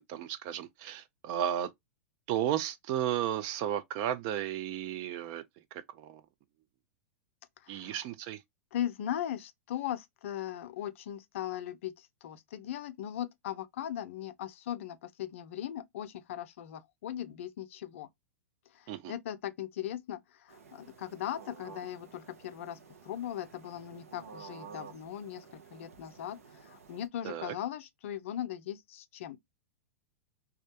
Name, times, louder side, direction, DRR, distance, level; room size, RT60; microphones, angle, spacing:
voice 1, 0.0-1.7 2.3-5.4 5.7-6.2 7.7-8.4 18.9-19.1 27.2-27.6, right 10 dB, 45° right, 0.4 m, -34 dB
voice 2, 7.6-8.0 8.7-18.1 18.9-20.2 20.5-22.8 23.0-29.4, left 11 dB, 60° left, 0.4 m, -39 dB
sound 1, 20.5-27.1, right 6 dB, 80° right, 0.6 m, -52 dB
2.3 x 2.1 x 2.6 m
hypercardioid pair, 105°, 8 cm